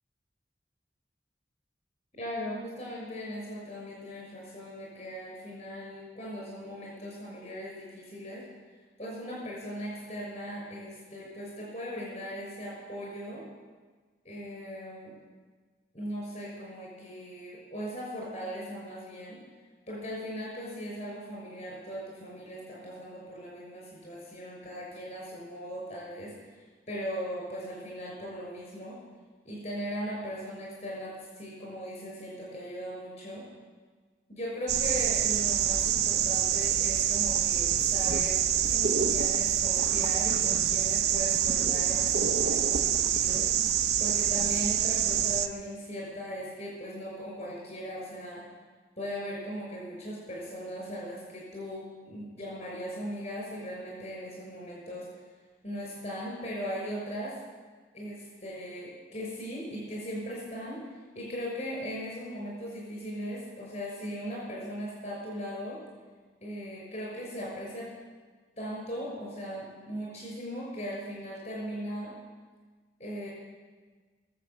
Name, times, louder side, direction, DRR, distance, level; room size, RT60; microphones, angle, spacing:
voice 1, 2.1-8.4 9.0-13.4 14.2-15.1 15.9-19.4 19.9-28.9 29.4-33.4 34.3-38.4 38.7-43.5 44.0-48.4 49.0-55.0 55.6-57.4 57.9-60.8 61.1-65.8 66.4-67.9 68.6-72.1 73.0-73.3, equal, 45° left, -4 dB, 6.1 m, -38 dB
sound 1, 34.7-45.5, right 9 dB, 70° right, 0.7 m, -26 dB
22.0 x 7.7 x 7.8 m, 1.4 s
head